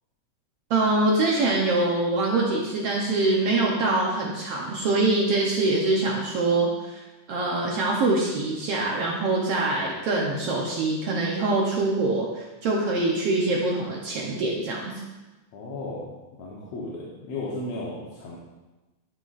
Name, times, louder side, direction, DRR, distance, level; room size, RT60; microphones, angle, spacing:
voice 1, 0.7-7.0 7.3-15.0, right 2 dB, 70° right, -2 dB, 1.5 m, -24 dB
voice 2, 15.5-16.1 16.4-18.4, left 2 dB, 65° left, -6 dB, 1.9 m, -34 dB
11.5 x 6.1 x 2.5 m, 1.1 s
omnidirectional pair, 3.5 m